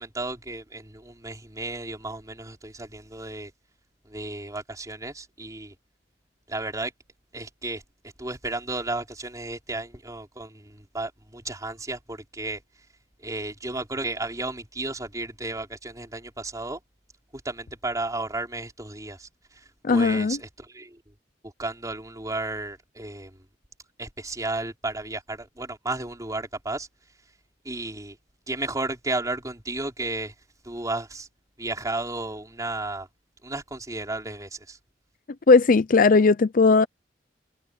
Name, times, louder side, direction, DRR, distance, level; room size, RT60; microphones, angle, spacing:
voice 1, 0.0-3.5 4.1-5.7 6.5-6.9 7.3-7.8 8.2-12.6 13.2-16.8 17.4-19.3 19.9-21.0 21.6-23.3 24.0-26.9 27.6-28.1 28.5-30.3 30.6-31.3 31.6-33.1 33.4-34.8, right 2 dB, 20° right, 4.0 m, -33 dB
voice 2, 19.8-20.4 35.5-36.9, left 4 dB, 45° left, 0.5 m, -17 dB
head